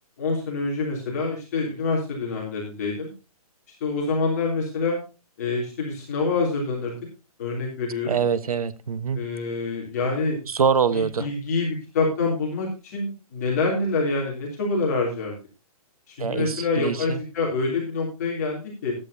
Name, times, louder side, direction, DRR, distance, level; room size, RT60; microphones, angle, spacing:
voice 1, 0.2-3.1 3.8-5.0 5.4-7.0 7.4-8.2 9.1-10.4 10.9-15.4 16.1-19.0, left 3 dB, 25° left, 3.1 m, -26 dB
voice 2, 8.1-9.2 10.5-11.3 16.2-17.2, right 6 dB, 70° right, 1.2 m, -24 dB
15.0 x 11.0 x 2.8 m
hypercardioid pair, 180°, 20 cm